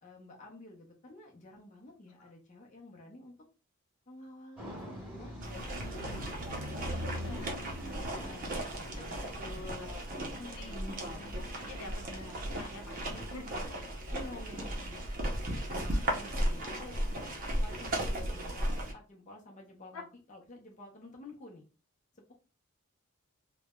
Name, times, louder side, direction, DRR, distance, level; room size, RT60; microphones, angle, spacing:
voice 1, 0.0-3.3 4.1-5.4 5.8-9.3 10.1-11.4 14.1-15.0 15.7-17.0 17.5-21.6 22.1-22.3, left 1 dB, 35° left, -1 dB, 0.5 m, -50 dB
sound 1, 4.6-13.9, left 1 dB, 5° right, 1.2 m, -45 dB
sound 2, 5.4-18.9, right 1 dB, 40° right, 0.6 m, -36 dB
voice 2, 5.8-6.2 7.0-8.4 9.0-9.1 9.4-10.0 10.6-10.7 11.6-13.4 15.9-16.4 17.4-17.5 19.9-20.0, left 2 dB, 70° left, 3 dB, 0.7 m, -48 dB
3.1 x 2.1 x 2.2 m, 0.34 s
head